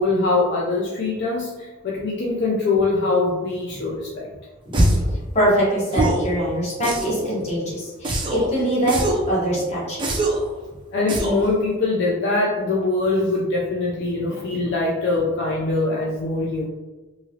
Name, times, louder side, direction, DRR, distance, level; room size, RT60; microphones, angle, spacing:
voice 1, 0.0-4.3 10.9-16.7, left 3 dB, 60° left, -3 dB, 0.4 m, -23 dB
sound 1, 4.7-5.1 5.9-6.3 6.8-7.3 8.0-8.5 8.9-9.3 10.0-10.5 11.1-11.5, right 1 dB, 25° right, 0.4 m, -22 dB
voice 2, 5.1-10.1, right 1 dB, 35° left, -6 dB, 1.1 m, -23 dB
3.1 x 2.4 x 2.7 m, 1.2 s
head